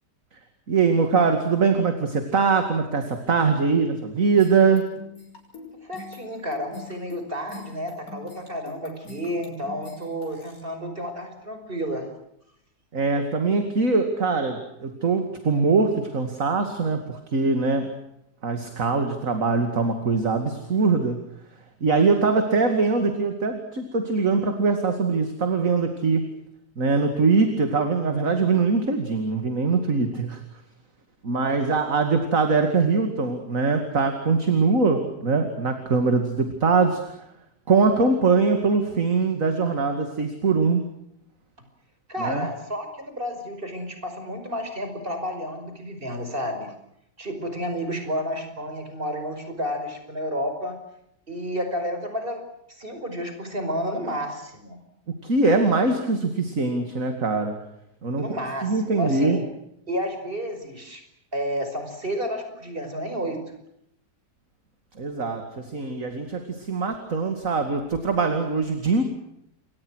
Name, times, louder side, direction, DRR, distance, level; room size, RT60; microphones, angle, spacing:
voice 1, 0.7-4.9 12.9-17.9 18.4-21.2 21.8-26.3 26.8-30.4 31.2-37.3 37.7-40.8 42.2-42.5 55.2-57.6 58.0-58.3 58.6-59.4 65.0-69.0, right 4 dB, 50° right, 6 dB, 2.8 m, -22 dB
sound 1, 4.4-10.6, left 3 dB, 55° left, 6.7 m, -43 dB
voice 2, 5.7-12.1 42.1-46.7 47.2-50.8 51.3-52.4 52.7-54.8 58.2-59.4 59.9-61.0 61.3-63.6, equal, 30° right, 7 dB, 5.7 m, -31 dB
29.0 x 24.0 x 6.4 m, 0.77 s
omnidirectional pair, 1.8 m